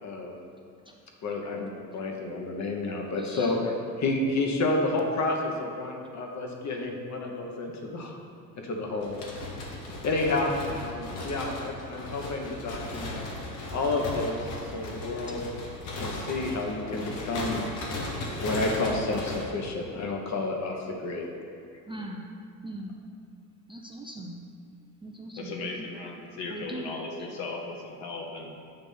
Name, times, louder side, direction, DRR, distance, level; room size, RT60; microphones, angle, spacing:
voice 1, 0.0-0.3 1.2-3.7 4.0-8.2 8.6-9.2 10.0-13.2 13.7-14.5 14.7-15.4 16.0-17.6 18.3-21.3, left 2 dB, 35° left, 2 dB, 1.1 m, -30 dB
voice 2, 3.2-3.5 21.9-22.3 22.6-23.0 23.7-24.4 25.0-25.6 26.3-26.9, right 1 dB, 10° right, -1 dB, 0.4 m, -40 dB
sound 1, 9.0-19.4, left 2 dB, 75° left, 1.2 m, -37 dB
voice 3, 25.4-28.5, left 3 dB, 60° left, 0 dB, 1.3 m, -37 dB
7.6 x 3.0 x 5.6 m, 2.4 s
hypercardioid pair, 70°, 47 cm